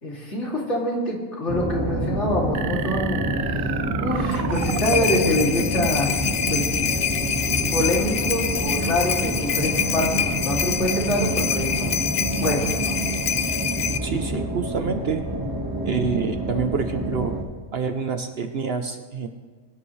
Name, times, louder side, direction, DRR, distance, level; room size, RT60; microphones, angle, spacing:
voice 1, 0.0-3.7 4.0-6.2 6.5-6.6 7.7-12.0 12.4-13.0, left 1 dB, 55° left, -3 dB, 3.1 m, -25 dB
sound 1, 1.5-17.4, right 1 dB, 15° right, 1.6 m, -27 dB
sound 2, 2.6-6.1, right 9 dB, 80° right, 1.0 m, -31 dB
sound 3, 4.3-14.0, left 8 dB, 85° left, 0.3 m, -26 dB
voice 2, 14.0-15.2 15.8-17.3 17.7-19.3, right 5 dB, 55° right, 7 dB, 0.9 m, -27 dB
22.5 x 11.0 x 3.2 m, 1.5 s
omnidirectional pair, 1.4 m